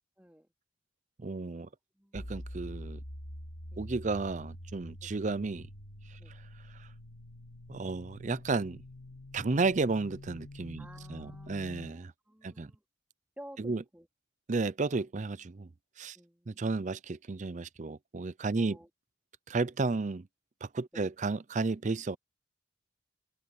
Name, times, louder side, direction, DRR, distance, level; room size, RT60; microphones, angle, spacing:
voice 1, 0.2-0.5 1.5-1.7 2.0-2.3 3.7-3.8 5.0-5.1 6.2-6.3 10.8-12.8 13.4-14.1 16.1-16.8 18.5-18.9 20.9-21.1, equal, 5° right, 3.2 m, -53 dB
voice 2, 1.2-1.7 2.1-3.0 3.8-5.7 7.7-8.8 9.3-12.1 12.4-12.7 13.6-13.8 14.5-15.7 16.0-16.2 16.5-18.8 19.5-20.3 20.6-22.2, right 3 dB, 40° right, 0.5 m, -32 dB
sound 1, 2.1-11.9, left 1 dB, 70° left, 2.9 m, -46 dB
head